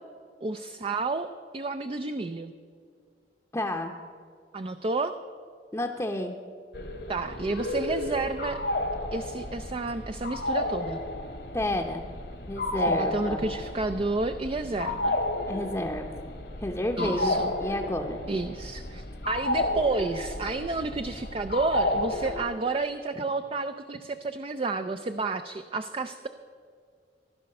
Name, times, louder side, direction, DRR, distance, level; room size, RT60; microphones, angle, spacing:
voice 1, 0.4-2.5 4.5-5.1 7.1-8.6 9.1-11.0 12.9-15.2 17.0-17.5 18.3-26.3, right 3 dB, 30° right, 8 dB, 0.4 m, -31 dB
voice 2, 3.5-3.9 5.7-6.3 11.5-12.0 12.5-13.4 15.5-16.3 16.6-18.2, left 1 dB, 15° left, 0 dB, 0.7 m, -30 dB
sound 1, 6.7-22.4, left 1 dB, 70° left, 1.5 m, -32 dB
15.5 x 11.5 x 6.5 m, 2.2 s
head